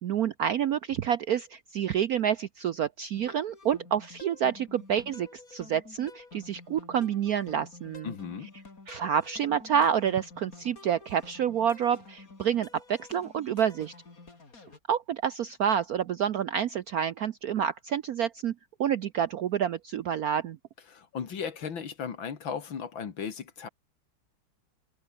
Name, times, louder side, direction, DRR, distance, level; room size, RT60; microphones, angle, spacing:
voice 1, 0.0-8.1 8.9-13.9 14.9-18.5 18.8-20.6, right 8 dB, 70° right, 0.9 m, -28 dB
sound 1, 3.1-14.8, left 3 dB, 40° left, 4.0 m, -50 dB
voice 2, 8.0-8.5 20.9-23.7, left 7 dB, 70° left, 2.8 m, -36 dB
omnidirectional pair, 2.3 m